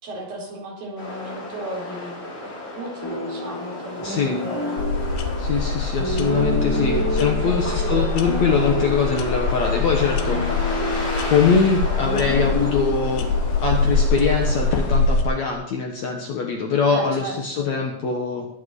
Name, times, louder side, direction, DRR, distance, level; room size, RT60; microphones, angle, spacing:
voice 1, 0.0-4.8 7.0-8.3 16.9-17.7, right 1 dB, 60° right, -2 dB, 5.8 m, -35 dB
sound 1, 1.0-15.0, left 1 dB, 35° left, 5.6 m, -33 dB
sound 2, 3.0-14.0, equal, 5° left, 3.1 m, -30 dB
voice 2, 4.0-4.4 5.4-10.7 11.3-13.3 13.6-18.5, left 5 dB, 60° left, 2 dB, 2.1 m, -23 dB
sound 3, 4.8-15.2, left 3 dB, 75° left, 3.2 m, -24 dB
21.0 x 9.0 x 4.8 m, 0.75 s
omnidirectional pair, 4.6 m